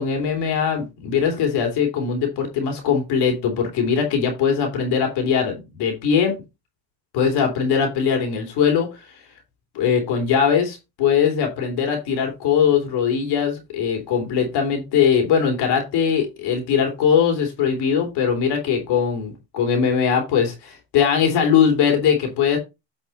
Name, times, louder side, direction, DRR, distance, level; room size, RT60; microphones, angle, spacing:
voice 1, 0.0-6.3 7.1-8.9 9.7-22.6, left 7 dB, 50° left, 3.1 m, -21 dB
9.2 x 5.2 x 4.2 m
supercardioid pair, 140°, 49 cm